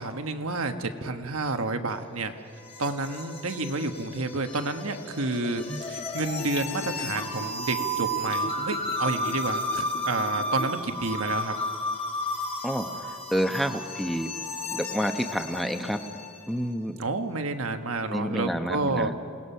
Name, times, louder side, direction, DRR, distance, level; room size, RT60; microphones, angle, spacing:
voice 1, 0.0-2.3 2.8-11.5 17.0-19.1, right 3 dB, 85° right, 7 dB, 1.3 m, -30 dB
sound 1, 1.9-16.5, left 1 dB, 30° left, 2.5 m, -33 dB
Gurgling / Bathtub (filling or washing), 5.7-10.8 11.2-11.3, left 2 dB, 50° left, 2.1 m, -40 dB
voice 2, 13.3-14.3 14.7-16.0 16.5-17.0 18.1-19.1, equal, ahead, 6 dB, 0.9 m, -28 dB
28.5 x 18.5 x 5.7 m, 2.3 s
head